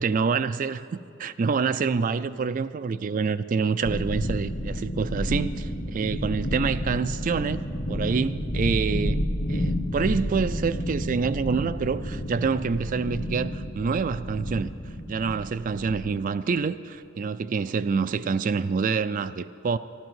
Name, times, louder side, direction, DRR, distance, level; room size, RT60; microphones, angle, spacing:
voice 1, 0.0-7.6 7.9-9.2 9.5-14.7 15.1-19.8, right 5 dB, 40° right, 13 dB, 0.3 m, -27 dB
sound 1, 3.8-16.1, equal, 40° left, 1.5 m, -30 dB
13.0 x 12.0 x 7.5 m, 2.6 s
head